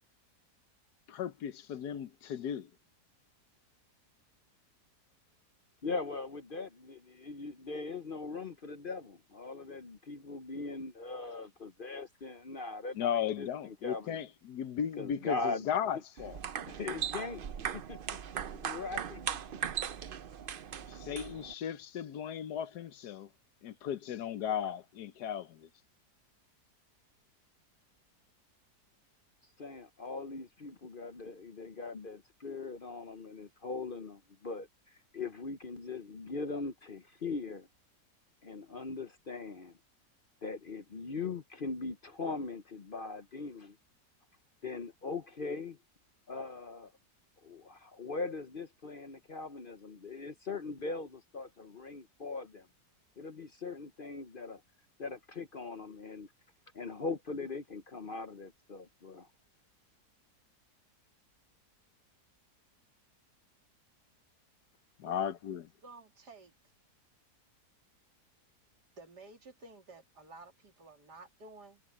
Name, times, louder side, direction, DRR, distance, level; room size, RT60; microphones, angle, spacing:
voice 1, 1.1-2.7 13.0-16.4 20.9-23.3 23.6-25.7 65.0-65.6, left 9 dB, 75° left, 1.4 m, -36 dB
voice 2, 5.8-14.2 15.0-15.7 16.5-17.5 17.7-18.2 18.5-19.8 29.6-37.7 38.4-39.8 40.4-43.8 44.6-45.8 46.3-46.9 47.4-52.7 53.2-54.6 55.0-56.3 56.7-59.3, left 3 dB, 45° left, 0.8 m, -40 dB
sound 1, 16.2-21.5, right 8 dB, 60° right, 0.5 m, -39 dB
voice 3, 65.1-66.5 69.0-71.8, right 3 dB, 90° right, 3.4 m, -53 dB
omnidirectional pair, 1.7 m